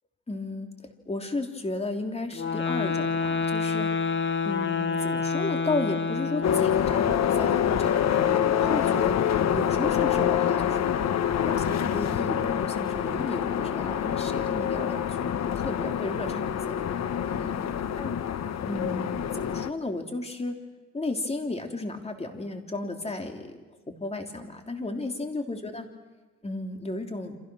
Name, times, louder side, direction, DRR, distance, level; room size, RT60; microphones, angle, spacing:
voice 1, 0.3-3.9 4.4-11.0 11.2-18.1 18.6-20.6 20.9-23.6 23.9-25.9 26.4-27.4, left 2 dB, 20° left, 4 dB, 3.3 m, -34 dB
sound 1, 2.3-6.9, left 5 dB, 40° left, 1.7 m, -28 dB
sound 2, 6.4-19.7, left 9 dB, 60° left, 1.3 m, -26 dB
29.0 x 27.0 x 6.4 m, 1.2 s
cardioid pair, 100°, 30 cm